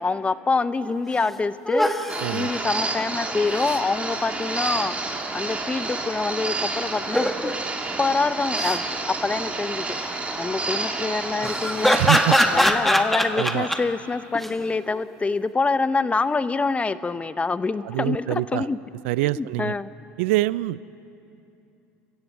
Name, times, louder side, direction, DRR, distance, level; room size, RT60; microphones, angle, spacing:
voice 1, 0.0-1.9 2.3-4.9 5.3-7.5 8.0-8.8 9.2-10.0 10.3-12.0 12.5-18.8 19.4-19.9, left 4 dB, 20° left, 14 dB, 0.8 m, -25 dB
sound 1, 0.8-0.9 1.2-1.3 1.6-2.2 3.3-3.8 7.0-7.5 8.4-8.8 11.4-13.8 14.3-14.5, equal, 5° left, 1.6 m, -22 dB
sound 2, 2.1-12.7, right 3 dB, 20° right, 2.6 m, -29 dB
voice 2, 11.9-12.6 13.3-13.7 17.8-18.7 19.0-19.8 20.2-20.8, right 19 dB, 80° right, 20 dB, 0.4 m, -25 dB
29.5 x 15.5 x 7.3 m, 2.9 s
supercardioid pair, 90°, 7 cm